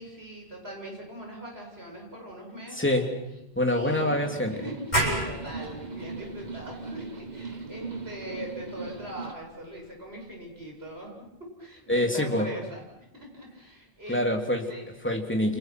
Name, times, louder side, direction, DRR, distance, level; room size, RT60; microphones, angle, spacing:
voice 1, 0.0-3.0 3.7-4.1 4.5-11.1 11.4-14.3 14.7-14.9, right 1 dB, 80° right, 0 dB, 7.8 m, -41 dB
voice 2, 2.7-3.1 3.5-4.6 11.9-12.5 14.1-14.7 15.0-15.6, left 1 dB, 10° left, 2 dB, 3.3 m, -25 dB
sound 1, 4.0-9.3, right 4 dB, 45° right, 1.5 m, -39 dB
sound 2, 4.9-10.3, right 1 dB, 45° left, 6.5 m, -34 dB
29.5 x 27.0 x 6.2 m, 0.88 s
omnidirectional pair, 1.0 m